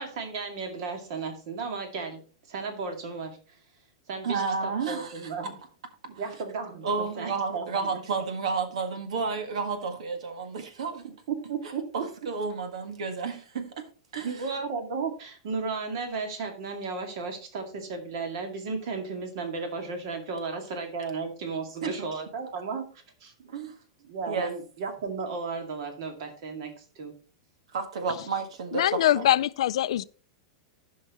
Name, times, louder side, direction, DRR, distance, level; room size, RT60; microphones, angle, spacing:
voice 1, 0.0-2.2 2.5-3.4 4.1-5.6 6.1-6.9 7.1-7.9 11.3-11.9 14.2-22.9 23.2-23.6 24.0-27.1, right 4 dB, 50° right, 2.2 m, -34 dB
voice 2, 4.2-5.3 6.8-11.0 11.9-13.9 14.1-14.3 21.8-22.1 23.5-23.7 24.3-24.5 27.7-28.8 29.1-29.2, right 5 dB, 80° right, 1.6 m, -31 dB
voice 3, 28.7-30.0, left 12 dB, 70° left, 0.4 m, -23 dB
15.0 x 5.6 x 3.0 m
supercardioid pair, 165°, 3 cm